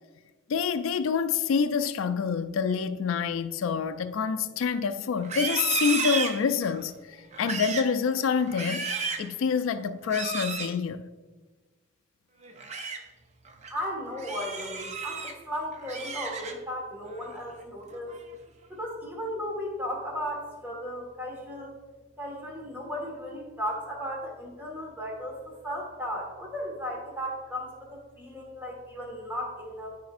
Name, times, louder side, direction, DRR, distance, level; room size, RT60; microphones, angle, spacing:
voice 1, 0.5-6.9 7.4-8.9 9.2-11.1, left 6 dB, 85° left, 0.4 m, -27 dB
Livestock farm animals working animals, 5.2-6.9 7.3-7.9 8.4-9.3 10.1-10.7 12.4-13.0 13.5-13.7 14.2-15.3 15.7-16.8 17.2-17.5 17.9-18.3, right 4 dB, 35° right, 0.5 m, -33 dB
voice 2, 13.7-18.2 18.7-21.7 22.2-30.0, equal, 10° right, 1.6 m, -35 dB
13.5 x 5.0 x 2.5 m
head